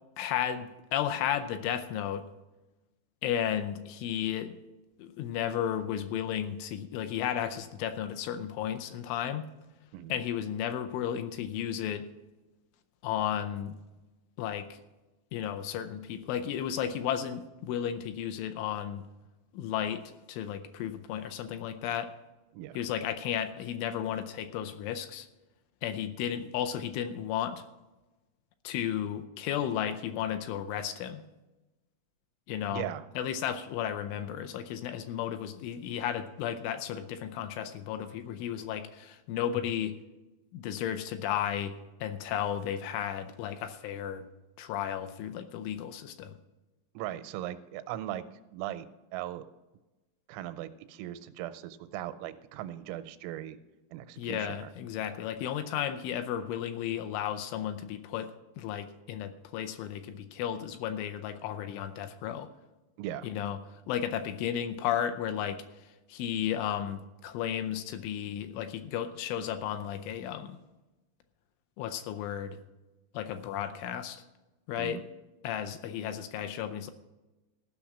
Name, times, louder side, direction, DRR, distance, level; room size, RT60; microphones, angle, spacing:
voice 1, 0.2-2.2 3.2-4.6 5.0-9.5 10.1-12.0 13.0-13.8 14.4-14.7 15.3-19.0 19.5-22.1 22.7-25.3 25.8-27.6 28.6-31.2 32.5-32.9 33.2-39.9 40.5-41.8 42.0-44.3 44.6-46.3 54.2-58.3 58.6-62.5 63.2-63.6 63.9-65.6 66.1-70.6 71.8-72.6 73.1-74.2 74.7-75.0 75.4-76.9, left 10 dB, 80° left, 9 dB, 3.0 m, -33 dB
voice 2, 32.7-33.1 46.9-48.2 48.5-48.9 49.1-49.5 50.3-53.6 53.9-54.7 63.0-63.3 74.8-75.0, right 13 dB, 85° right, 12 dB, 3.3 m, -38 dB
15.5 x 6.0 x 7.2 m, 1.1 s
omnidirectional pair, 5.8 m